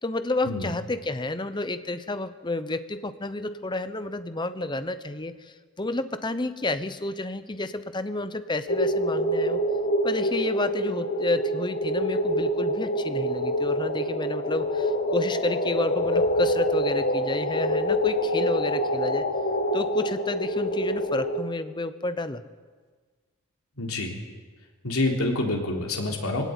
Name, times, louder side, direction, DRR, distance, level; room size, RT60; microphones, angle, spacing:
voice 1, 0.0-9.6 10.0-19.2 19.7-22.4, left 2 dB, 20° left, 11 dB, 0.9 m, -30 dB
sound 1, 8.7-21.4, equal, 45° left, 1.7 m, -26 dB
voice 2, 23.8-24.1 24.8-26.4, left 2 dB, 90° left, 0 dB, 3.6 m, -27 dB
21.0 x 16.5 x 9.5 m, 1.5 s
head